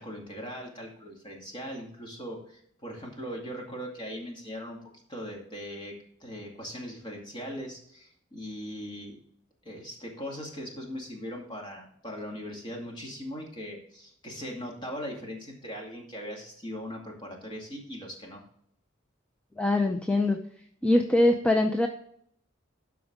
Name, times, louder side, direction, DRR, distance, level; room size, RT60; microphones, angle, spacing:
voice 1, 0.0-9.2 9.6-18.4, equal, 25° left, 0 dB, 2.3 m, -40 dB
voice 2, 19.6-20.4 20.8-21.9, left 1 dB, 5° left, 4 dB, 0.6 m, -23 dB
12.5 x 4.8 x 3.7 m, 0.66 s
head